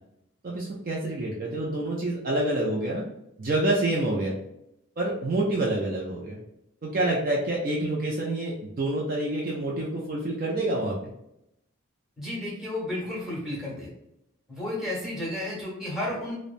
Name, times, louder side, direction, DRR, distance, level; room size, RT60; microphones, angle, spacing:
voice 1, 0.4-3.0 3.4-4.3 5.0-6.4 6.8-10.9, right 1 dB, 40° right, -3 dB, 0.4 m, -27 dB
voice 2, 12.2-13.9 14.5-16.4, left 1 dB, ahead, -6 dB, 1.0 m, -32 dB
2.8 x 2.0 x 2.5 m, 0.83 s
head